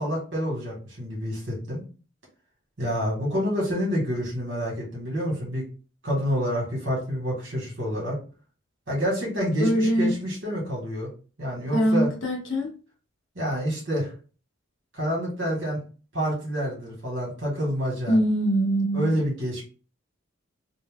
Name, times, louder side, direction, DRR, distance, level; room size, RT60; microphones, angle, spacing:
voice 1, 0.0-1.8 2.8-5.7 6.0-8.2 8.9-11.1 11.4-12.1 13.4-14.1 14.9-15.8 16.1-18.2 18.9-19.6, equal, 55° right, -3 dB, 2.0 m, -28 dB
voice 2, 9.6-10.1 11.7-12.7 18.1-19.1, equal, 60° left, 0 dB, 1.1 m, -23 dB
3.3 x 2.7 x 3.6 m, 0.37 s
head